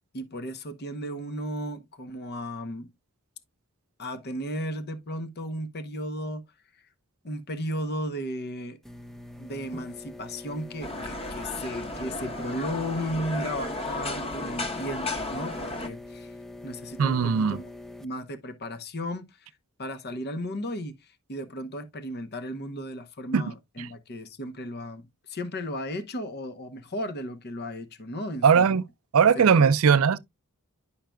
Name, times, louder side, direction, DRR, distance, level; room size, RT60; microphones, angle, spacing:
voice 1, 0.1-2.9 4.0-6.4 7.2-8.8 9.4-16.3 16.6-17.7 18.0-19.5 19.8-28.8 29.3-29.5, equal, 50° left, 0.9 m, -35 dB
sound 1, 8.8-18.0, left 2 dB, ahead, 0.5 m, -44 dB
sound 2, 10.8-15.9, left 2 dB, 25° left, 1.1 m, -34 dB
voice 2, 17.0-17.6 23.3-23.4 28.4-28.8 29.1-30.2, right 6 dB, 70° right, 0.4 m, -19 dB
10.5 x 5.6 x 2.2 m
head